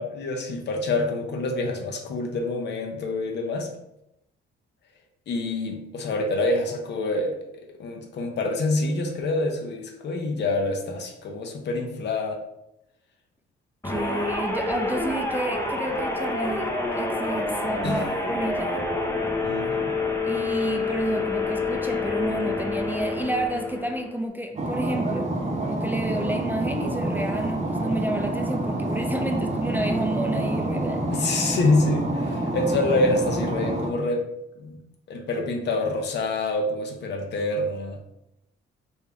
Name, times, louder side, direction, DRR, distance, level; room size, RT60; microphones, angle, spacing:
voice 1, 0.0-3.7 5.3-7.4 7.8-12.4 17.8-18.0 19.4-20.0 31.1-34.3 34.6-34.8 35.1-38.0, left 2 dB, 60° left, 3 dB, 0.7 m, -26 dB
sound 1, 13.8-24.2, left 3 dB, 15° left, 0.7 m, -28 dB
voice 2, 13.8-16.7 16.9-18.7 20.2-25.3 25.6-31.2, right 1 dB, 10° right, 3 dB, 0.4 m, -30 dB
sound 2, 24.6-33.9, right 1 dB, 35° right, 0.8 m, -27 dB
3.4 x 2.7 x 3.4 m, 0.85 s
cardioid pair, 90°, 20 cm